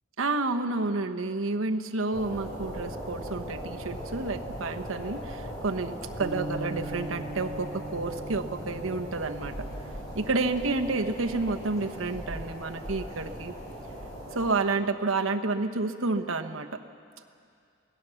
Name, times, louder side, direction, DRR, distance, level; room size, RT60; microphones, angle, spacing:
voice 1, 0.2-9.7 10.1-13.5 14.3-16.8, right 3 dB, 85° right, 6 dB, 1.1 m, -30 dB
sound 1, 2.1-14.5, equal, 20° left, 6.1 m, -39 dB
Bass guitar, 6.2-12.4, right 2 dB, 25° right, 1.7 m, -42 dB
25.0 x 18.0 x 7.1 m, 2.4 s
head